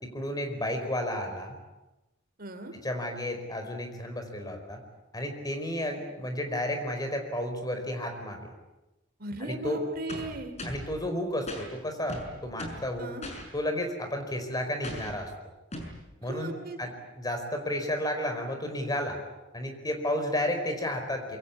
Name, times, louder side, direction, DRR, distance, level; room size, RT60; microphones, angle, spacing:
voice 1, 0.0-1.5 2.7-4.8 5.1-8.5 9.4-9.8 10.6-13.1 13.5-15.3 16.2-19.2 19.5-21.4, left 1 dB, 20° left, 5 dB, 4.8 m, -32 dB
voice 2, 2.4-2.7 9.2-10.5 13.0-13.3 16.2-16.8, right 2 dB, 50° right, 7 dB, 3.2 m, -37 dB
sound 1, 10.1-10.9 11.5-11.7 12.1-12.9 13.2-13.5 14.8-15.2 15.7-16.0, left 1 dB, 35° left, 6.2 m, -38 dB
26.5 x 24.0 x 8.5 m, 1.0 s
head